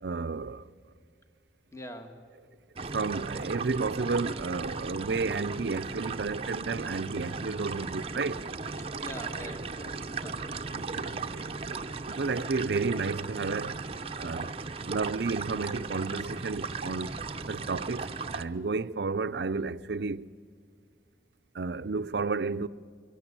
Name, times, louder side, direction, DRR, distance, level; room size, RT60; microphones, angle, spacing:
voice 1, 0.0-0.7 2.9-8.4 10.7-13.8 14.2-14.5 14.8-17.2 17.5-20.3 21.5-22.7, right 4 dB, 70° right, 0.6 m, -32 dB
voice 2, 1.7-2.2 8.8-10.6, equal, 15° left, 1.5 m, -44 dB
sound 1, 2.8-18.4, right 4 dB, 35° right, 0.7 m, -37 dB
23.5 x 18.0 x 9.9 m
head